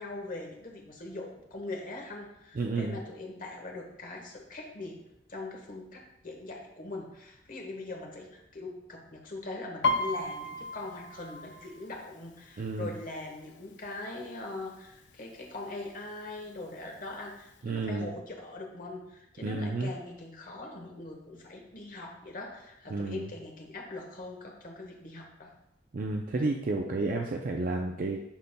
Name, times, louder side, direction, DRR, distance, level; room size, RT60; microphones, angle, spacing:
voice 1, 0.0-5.0 5.3-25.5, left 2 dB, 50° left, 1 dB, 1.3 m, -41 dB
voice 2, 2.6-3.0 12.6-12.9 17.6-18.1 19.4-19.9 22.9-23.3 25.9-28.2, right 3 dB, 50° right, 1 dB, 0.5 m, -31 dB
Piano, 9.8-13.5 13.8-14.2 14.6-15.2 15.8-15.9 16.1-17.2 17.5-17.6, left 2 dB, 75° left, 0.5 m, -34 dB
11.5 x 4.1 x 2.2 m, 0.86 s
head